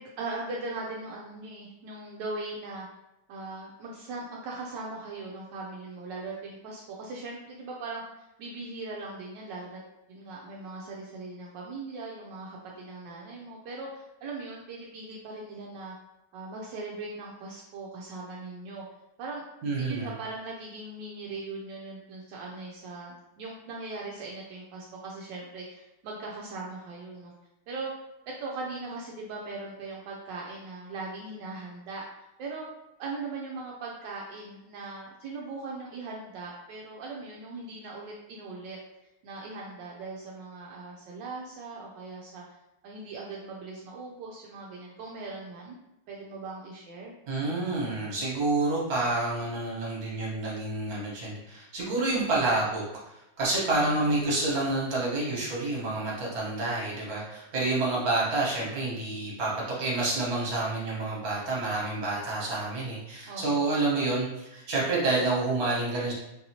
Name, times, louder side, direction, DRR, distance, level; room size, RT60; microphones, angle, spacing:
voice 1, 0.0-2.9 3.3-8.0 8.4-9.8 10.1-15.9 16.3-18.8 19.2-19.4 19.8-27.3 27.7-27.9 28.3-32.0 32.4-32.6 33.0-38.8 39.2-42.4 42.8-45.8 46.1-47.1 63.3-63.6, right 3 dB, 80° right, -3 dB, 1.2 m, -39 dB
voice 2, 19.6-20.1 47.3-59.5 59.8-66.1, right 2 dB, 55° right, -5 dB, 1.6 m, -28 dB
4.4 x 2.7 x 2.8 m, 0.94 s
omnidirectional pair, 1.9 m